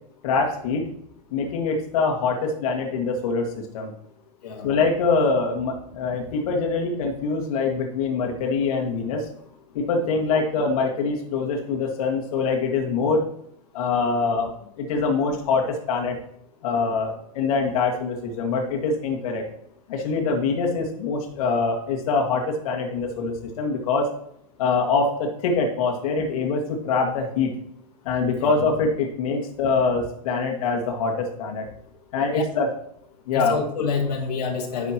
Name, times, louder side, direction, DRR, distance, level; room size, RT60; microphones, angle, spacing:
voice 1, 0.2-0.9 1.3-3.9 4.6-9.3 9.7-13.3 13.7-16.2 16.6-19.4 19.9-24.1 24.6-27.6 28.1-31.7 32.1-32.7 33.3-33.6, left 4 dB, 60° left, 1 dB, 1.9 m, -24 dB
voice 2, 33.3-34.9, left 5 dB, 80° left, 1 dB, 2.0 m, -27 dB
11.0 x 7.1 x 2.9 m, 0.71 s
hypercardioid pair, 125°, 20 cm